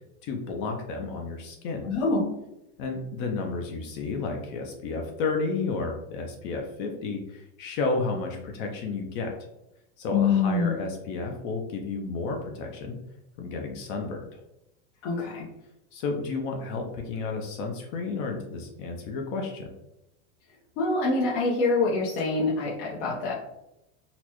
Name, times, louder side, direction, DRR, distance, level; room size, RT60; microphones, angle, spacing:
voice 1, 0.2-1.9 2.8-9.3 10.0-13.0 13.4-14.2 15.9-19.7, left 3 dB, 40° left, 2 dB, 0.5 m, -32 dB
voice 2, 1.8-2.3 10.1-10.8 15.0-15.5 20.8-23.3, left 3 dB, 65° left, -6 dB, 1.0 m, -25 dB
4.0 x 2.2 x 2.9 m, 0.88 s
supercardioid pair, 155°, 37 cm